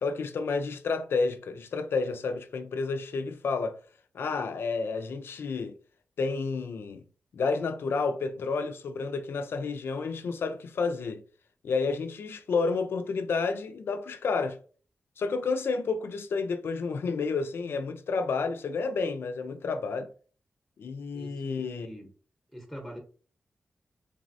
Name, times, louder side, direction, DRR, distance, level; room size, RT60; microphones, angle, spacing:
voice 1, 0.0-3.7 4.1-5.7 6.2-7.0 7.3-11.2 11.6-14.6 15.2-20.1 20.8-21.9, left 4 dB, 85° left, 0.3 m, -30 dB
voice 2, 21.1-22.1 22.5-23.0, equal, ahead, 0.7 m, -43 dB
3.2 x 2.0 x 2.5 m
wide cardioid pair, 100°, 4 cm